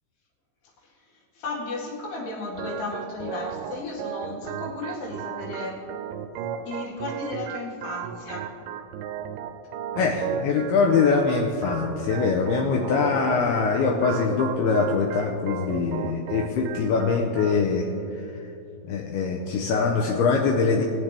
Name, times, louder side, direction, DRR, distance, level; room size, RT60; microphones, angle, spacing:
voice 1, 0.8-5.8 6.6-8.5, left 2 dB, 65° left, -4 dB, 3.7 m, -34 dB
Organ, 2.6-17.6, right 8 dB, 90° right, 3.1 m, -35 dB
voice 2, 9.9-17.9 18.2-18.3 18.8-20.9, left 5 dB, 90° left, 1 dB, 2.3 m, -23 dB
21.5 x 7.3 x 3.4 m, 2.8 s
omnidirectional pair, 5.3 m